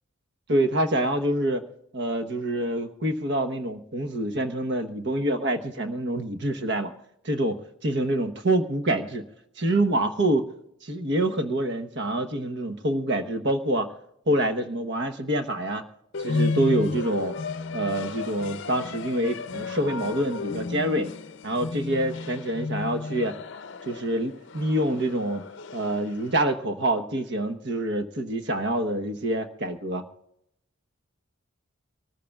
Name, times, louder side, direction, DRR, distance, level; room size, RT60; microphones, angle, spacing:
voice 1, 0.5-1.6 1.9-6.9 7.2-9.2 9.6-10.5 10.8-13.9 14.3-15.8 16.2-17.3 17.7-21.1 21.4-23.4 23.9-25.4 25.7-30.0, right 1 dB, 55° right, 8 dB, 1.0 m, -26 dB
sound 1, 16.1-26.3, left 4 dB, 55° left, 0.6 m, -33 dB
25.5 x 14.0 x 2.4 m, 0.77 s
head